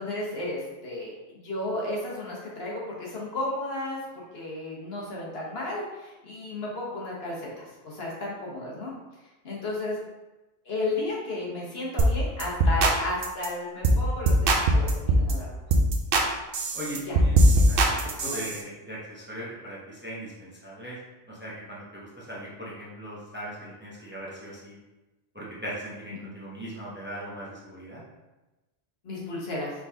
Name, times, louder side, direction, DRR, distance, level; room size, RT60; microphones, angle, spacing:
voice 1, 0.0-8.9 9.4-10.0 10.6-15.5 17.1-17.2 17.5-17.7 18.2-18.4 29.0-29.7, left 2 dB, 65° left, -4 dB, 1.3 m, -33 dB
sound 1, 12.0-12.1 12.4-13.0 13.2-13.5 13.8-14.0 14.3-15.3 15.7-16.3 16.5-18.6, right 1 dB, 60° right, 0.7 m, -20 dB
voice 2, 16.7-21.0 21.3-24.8 25.3-28.0, equal, 10° right, -6 dB, 0.8 m, -39 dB
4.7 x 3.8 x 2.8 m, 1.1 s
omnidirectional pair, 1.1 m